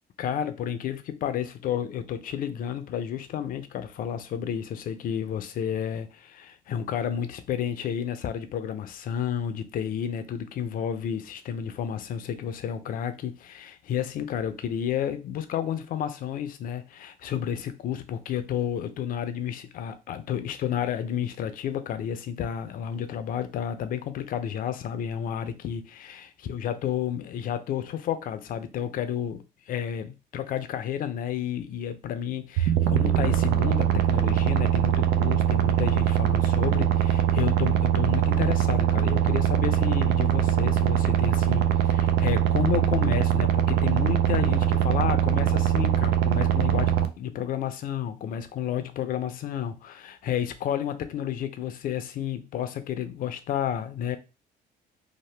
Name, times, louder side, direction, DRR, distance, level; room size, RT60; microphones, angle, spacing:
voice 1, 0.2-54.2, left 9 dB, 55° left, 0.5 m, -31 dB
sound 1, 32.6-47.1, right 10 dB, 80° right, 0.4 m, -22 dB
2.8 x 2.1 x 3.2 m
cardioid pair, 110°, 17 cm